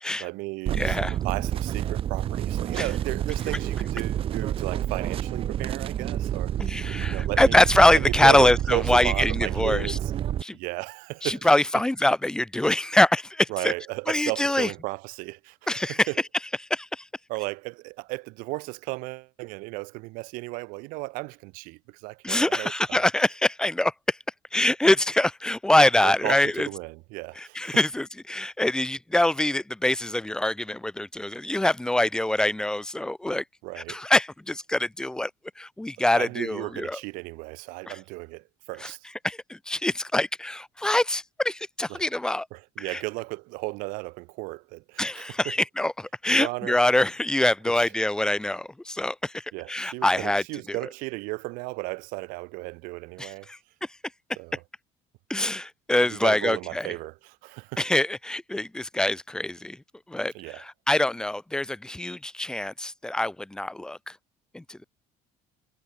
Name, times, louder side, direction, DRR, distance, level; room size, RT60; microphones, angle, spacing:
voice 1, 0.2-1.0 1.2-6.5 7.1-7.6 7.9-10.1 10.5-11.6 13.5-16.2 17.3-23.0 26.0-27.8 33.6-34.0 36.0-39.0 41.9-42.0 42.5-45.5 46.3-46.8 47.7-47.9 49.5-53.5 54.4-54.6 56.0-57.8 60.3-60.6, right 25 dB, 85° right, 0.9 m, -35 dB
voice 2, 0.7-1.1 2.7-2.8 6.6-10.0 10.4-10.6 11.2-13.7 14.1-14.7 15.7-16.1 16.7-17.0 22.2-24.2 24.5-26.7 27.4-33.4 33.9-35.3 35.6-37.0 38.8-38.9 39.2-42.5 42.9-43.0 45.0-49.3 49.7-50.4 53.2-53.6 55.3-56.9 57.8-59.8 60.1-64.0 64.5-64.8, left 1 dB, 5° left, 0.8 m, -24 dB
sound 1, 0.7-10.4, right 11 dB, 40° right, 1.4 m, -29 dB
cardioid pair, 150°, 14 cm